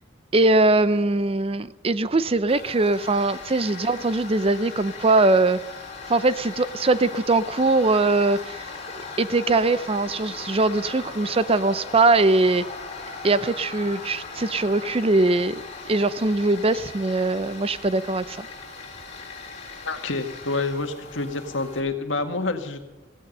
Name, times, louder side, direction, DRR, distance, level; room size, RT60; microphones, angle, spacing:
voice 1, 0.3-5.6 6.1-8.6 8.9-12.6 13.2-18.5, right 2 dB, 30° right, 15 dB, 0.5 m, -21 dB
Tools, 2.5-21.8, left 4 dB, 35° left, 4.4 m, -39 dB
voice 2, 19.9-22.8, left 3 dB, 75° left, 6 dB, 1.9 m, -28 dB
16.5 x 16.0 x 5.4 m, 1.1 s
head